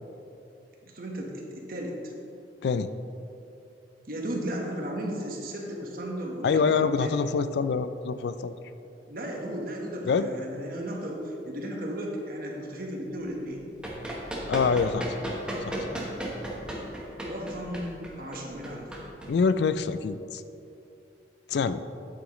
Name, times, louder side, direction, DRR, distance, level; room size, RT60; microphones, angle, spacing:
voice 1, 0.8-2.1 4.1-7.2 9.1-13.7 17.3-18.9, equal, 55° right, 0 dB, 1.3 m, -35 dB
voice 2, 6.4-8.5 10.1-10.3 14.5-15.1 15.7-15.8 19.3-20.4 21.5-21.8, left 5 dB, 70° left, 13 dB, 0.3 m, -25 dB
Run, 13.5-19.9, equal, 5° right, 1.1 m, -35 dB
9.2 x 8.5 x 3.1 m, 2.7 s
head